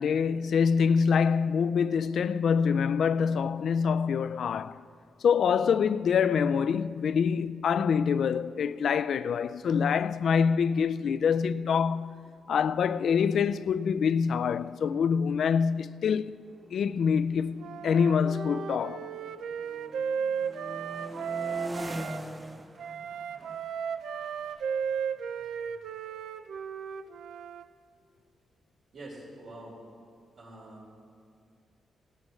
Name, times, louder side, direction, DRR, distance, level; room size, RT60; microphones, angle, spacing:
voice 1, 0.0-4.8 5.2-12.1 12.5-16.4 16.7-19.1, left 6 dB, 60° left, 0.3 m, -25 dB
sound 1, 13.8-13.9 14.1-14.5 15.2-19.2 19.5-26.2, right 1 dB, 15° right, 0.6 m, -44 dB
Wind instrument woodwind instrument, 17.6-22.2 22.8-27.6, right 7 dB, 85° right, 0.4 m, -35 dB
voice 2, 28.9-29.8 30.3-30.9, right 1 dB, 60° right, 4.1 m, -45 dB
18.0 x 17.0 x 3.1 m
wide cardioid pair, 160°, 0 cm